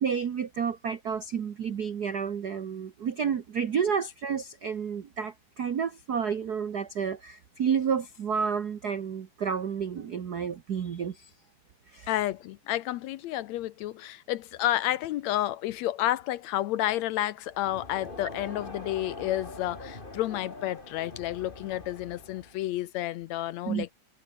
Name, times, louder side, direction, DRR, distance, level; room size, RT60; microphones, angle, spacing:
voice 1, 0.0-11.3 11.9-12.1 23.7-23.8, right 7 dB, 80° right, 0.8 m, -30 dB
voice 2, 12.1-23.9, left 14 dB, 75° left, 1.8 m, -30 dB
Crowd, 17.5-22.7, left 2 dB, 15° left, 2.8 m, -43 dB
omnidirectional pair, 3.5 m